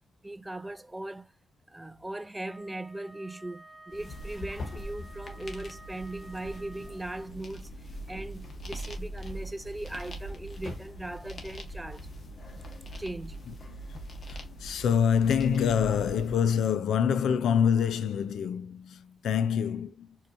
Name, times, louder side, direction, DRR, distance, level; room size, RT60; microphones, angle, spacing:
voice 1, 0.2-1.3 1.7-12.1 12.9-13.5, right 1 dB, 15° right, 0.5 m, -39 dB
Wind instrument woodwind instrument, 2.4-7.3, right 1 dB, 10° left, 1.3 m, -53 dB
sound 1, 3.9-16.4, equal, 55° left, 1.3 m, -42 dB
voice 2, 14.3-20.2, left 7 dB, 80° left, 0.4 m, -26 dB
4.2 x 2.8 x 2.6 m
supercardioid pair, 55°, 0 cm